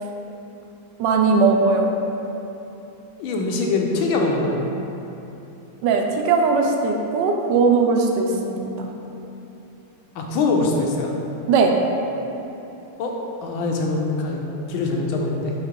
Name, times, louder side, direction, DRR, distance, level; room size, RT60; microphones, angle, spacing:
voice 1, 1.0-1.9 5.8-8.9 11.5-11.7, right 4 dB, 70° right, 2 dB, 1.2 m, -19 dB
voice 2, 3.2-4.6 10.1-11.1 13.0-13.2 13.4-14.4 14.7-15.5, left 3 dB, 90° left, 0 dB, 1.5 m, -23 dB
4.8 x 4.1 x 5.1 m, 3.0 s
omnidirectional pair, 2.2 m